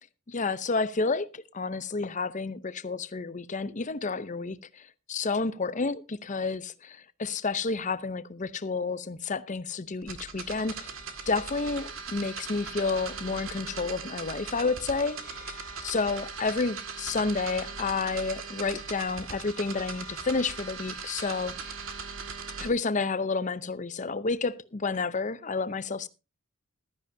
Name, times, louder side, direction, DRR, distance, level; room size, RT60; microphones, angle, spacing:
voice 1, 0.3-4.6 5.1-10.9 11.3-15.6 15.8-21.7 22.6-26.1, left 4 dB, 35° left, 0.7 m, -30 dB
sound 1, 10.0-22.7, right 5 dB, 75° right, 2.1 m, -39 dB
15.0 x 13.0 x 2.7 m
head